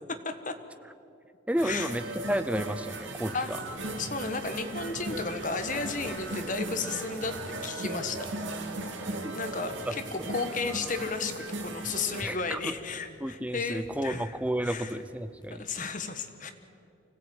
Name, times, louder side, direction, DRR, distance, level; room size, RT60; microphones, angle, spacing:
voice 1, 0.1-0.6 1.6-1.9 3.3-3.5 3.8-8.3 9.3-14.3 14.6-14.9 15.5-16.5, left 4 dB, 40° left, 8 dB, 1.5 m, -34 dB
voice 2, 1.5-3.6 9.2-9.3 9.8-9.9 10.2-10.3 12.2-12.7 13.2-15.6, equal, 5° right, 11 dB, 0.7 m, -32 dB
sound 1, 1.6-12.2, right 2 dB, 70° right, 2.4 m, -37 dB
sound 2, 9.2-15.8, equal, 25° left, 5.9 m, -58 dB
25.0 x 17.0 x 8.9 m, 2.6 s
head